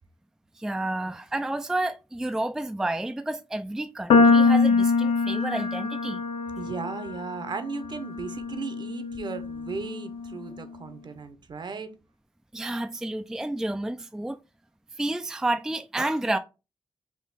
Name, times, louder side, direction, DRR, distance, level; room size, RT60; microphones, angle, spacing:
voice 1, 0.6-6.2 12.5-14.4 15.0-16.4, right 1 dB, 5° right, 0.3 m, -30 dB
sound 1, 4.1-10.4, left 4 dB, 85° left, 0.5 m, -24 dB
voice 2, 6.6-11.9, right 5 dB, 50° right, 0.7 m, -36 dB
3.6 x 2.6 x 4.0 m
cardioid pair, 75°, 10 cm